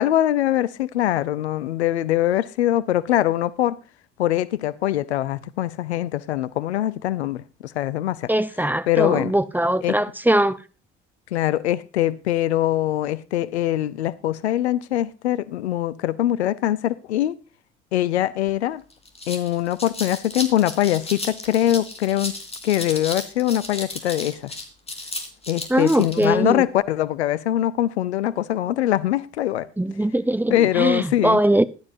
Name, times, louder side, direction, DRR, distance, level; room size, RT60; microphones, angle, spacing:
voice 1, 0.0-3.8 4.2-8.3 8.9-9.3 9.8-10.0 11.3-17.4 17.9-18.8 19.3-22.3 22.6-24.5 25.5-29.7 30.5-31.4, left 13 dB, 70° left, 0.7 m, -23 dB
voice 2, 8.3-10.6 25.7-26.6 29.8-31.7, right 1 dB, 5° right, 0.7 m, -21 dB
sound 1, 18.5-18.6 18.9-26.3, left 2 dB, 15° left, 3.4 m, -34 dB
16.0 x 12.0 x 2.6 m
figure-of-eight pair, 55°, 34 cm